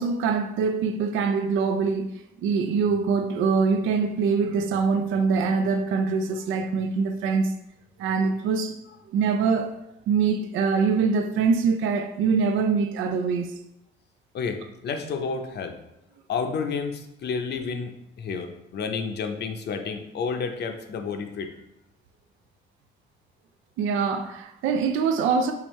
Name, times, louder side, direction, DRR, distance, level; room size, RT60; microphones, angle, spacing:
voice 1, 0.0-2.1 2.4-7.5 8.0-8.8 9.1-9.7 10.1-13.5 23.8-25.5, right 5 dB, 85° right, 0.4 m, -24 dB
voice 2, 14.3-15.8 16.3-21.5, left 5 dB, 60° left, 0.6 m, -30 dB
4.8 x 3.2 x 3.1 m
cardioid pair, 90°, 20 cm